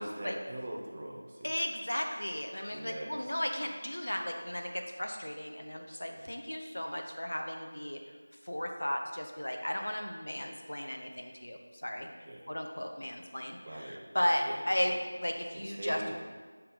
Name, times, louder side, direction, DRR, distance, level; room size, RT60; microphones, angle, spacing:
voice 1, 0.0-1.6 2.7-3.3 6.0-6.2 12.3-12.5 13.6-14.9 15.5-16.2, right 1 dB, 15° right, -3 dB, 0.4 m, -42 dB
voice 2, 1.4-8.0 8.4-12.1 12.5-16.2, equal, 70° left, 3 dB, 0.7 m, -35 dB
4.3 x 4.0 x 5.6 m, 1.5 s
figure-of-eight pair, 180°, 0 cm